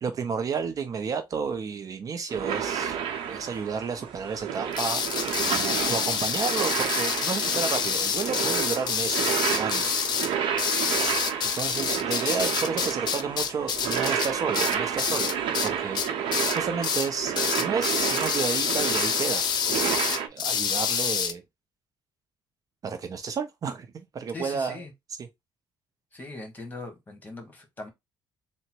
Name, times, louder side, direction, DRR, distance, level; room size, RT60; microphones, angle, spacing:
voice 1, 0.0-3.0 3.3-5.0 5.9-10.0 11.5-15.3 15.6-16.0 16.5-19.4 19.7-19.9 20.3-21.4 22.8-24.8 25.2-25.3, right 5 dB, 40° right, 0.5 m, -31 dB
sound 1, 2.3-20.3, right 8 dB, 70° right, 0.8 m, -30 dB
sound 2, 4.7-15.7 16.0-16.6 16.8-17.1 17.4-21.3, left 7 dB, 50° left, 0.6 m, -27 dB
voice 2, 24.3-24.9 26.1-27.9, left 2 dB, 20° left, 1.5 m, -40 dB
3.7 x 2.1 x 4.4 m
cardioid pair, 110°, 9 cm